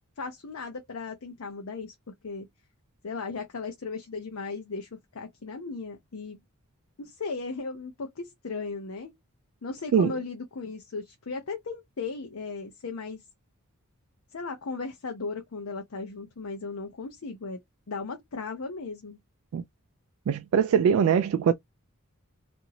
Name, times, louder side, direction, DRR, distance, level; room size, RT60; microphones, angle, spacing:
voice 1, 0.2-1.9 2.2-2.5 3.0-6.4 7.0-9.1 9.6-13.2 14.3-17.6 17.9-19.2, left 4 dB, 70° left, 0.6 m, -36 dB
voice 2, 20.3-21.5, right 7 dB, 75° right, 0.3 m, -22 dB
2.8 x 2.6 x 2.8 m
head